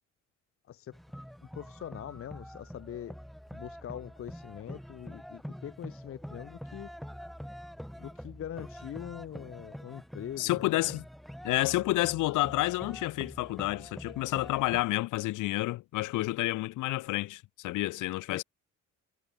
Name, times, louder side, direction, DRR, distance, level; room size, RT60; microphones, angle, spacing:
voice 1, 0.7-1.0 1.6-3.2 3.5-6.9 8.0-11.0 18.3-18.4, left 10 dB, 45° left, 0.7 m, -43 dB
sound 1, 0.9-14.8, equal, ahead, 0.5 m, -45 dB
voice 2, 10.4-11.1 11.4-18.4, left 18 dB, 85° left, 0.7 m, -30 dB
cardioid pair, 90°, 30 cm